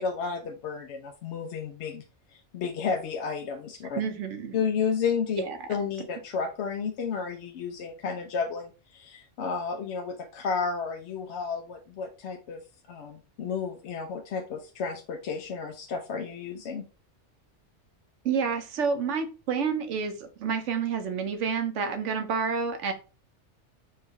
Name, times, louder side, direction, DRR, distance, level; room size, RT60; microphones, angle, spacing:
voice 1, 0.0-2.0 2.3-4.0 4.5-5.4 5.7-12.6 12.9-16.8, left 5 dB, 75° left, 5 dB, 0.8 m, -32 dB
voice 2, 3.9-4.5 5.4-5.6 18.2-22.9, right 6 dB, 80° right, 6 dB, 1.1 m, -29 dB
4.7 x 2.3 x 4.5 m, 0.34 s
omnidirectional pair, 1.2 m